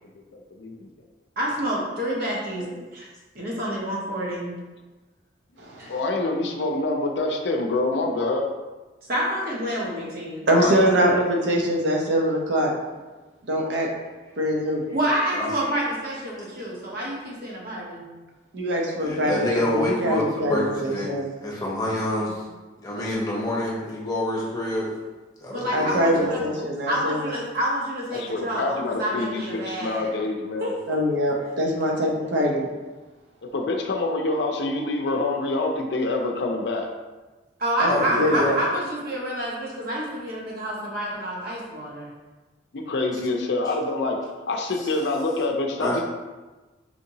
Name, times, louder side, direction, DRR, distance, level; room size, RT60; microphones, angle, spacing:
voice 1, 0.3-0.9 5.9-8.5 10.5-10.9 11.5-11.6 28.1-30.7 33.4-36.9 42.7-44.2 44.4-46.0, left 2 dB, 70° left, 2 dB, 0.5 m, -26 dB
voice 2, 1.4-3.1 3.3-4.5 5.8-5.9 9.1-10.5 14.9-18.0 22.1-22.4 25.5-26.4 26.9-30.1 30.6-30.9 37.6-42.1, equal, 55° right, -4 dB, 1.0 m, -28 dB
voice 3, 5.6-6.0 10.5-12.7 13.4-13.9 14.4-14.8 18.5-21.3 25.7-27.3 30.9-32.7 37.8-38.6, equal, 70° right, -1 dB, 0.7 m, -23 dB
voice 4, 19.0-21.1 21.4-22.4 22.8-24.9 25.4-26.7 37.9-38.5 43.6-43.7 44.8-44.9 45.8-46.0, left 1 dB, 20° left, -5 dB, 0.8 m, -28 dB
4.3 x 2.8 x 2.7 m, 1.2 s
head